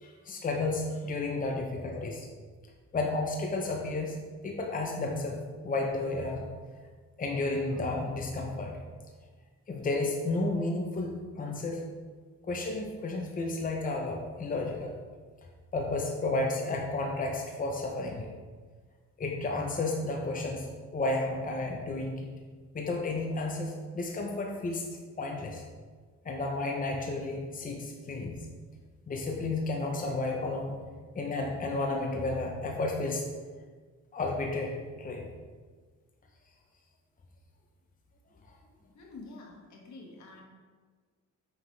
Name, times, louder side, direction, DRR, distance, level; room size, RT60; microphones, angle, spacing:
voice 1, 0.0-2.3 2.9-4.2 4.4-5.4 5.6-6.5 7.2-8.8 9.7-11.8 12.4-14.9 15.7-18.3 19.2-22.3 22.7-24.9 25.2-25.6 26.2-28.4 29.1-30.8 31.1-33.3 34.1-35.3, left 2 dB, 30° left, 1 dB, 0.8 m, -32 dB
voice 2, 38.9-40.4, left 3 dB, 70° left, -1 dB, 1.5 m, -47 dB
5.7 x 5.6 x 3.3 m, 1.5 s
cardioid pair, 90°, 30 cm